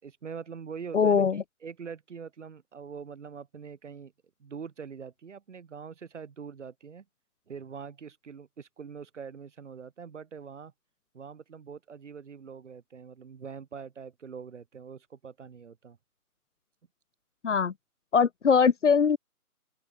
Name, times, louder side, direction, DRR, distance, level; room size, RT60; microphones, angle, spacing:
voice 1, 0.0-1.2 1.6-4.1 4.4-7.1 7.5-10.7 11.1-16.0, right 6 dB, 50° right, 4.0 m, -43 dB
voice 2, 0.9-1.4 17.4-17.7 18.1-19.2, left 6 dB, 50° left, 1.6 m, -22 dB
open air
figure-of-eight pair, 160°, 46 cm